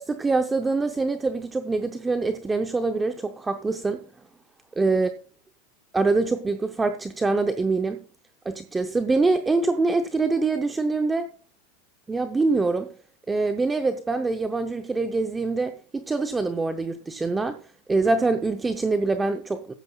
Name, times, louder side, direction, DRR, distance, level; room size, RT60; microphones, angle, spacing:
voice 1, 0.1-4.1 4.8-5.1 5.9-8.0 8.5-11.3 12.1-12.9 13.3-17.6 17.9-19.7, right 3 dB, 10° right, 0.6 m, -24 dB
14.0 x 12.0 x 2.3 m
supercardioid pair, 170°, 0 cm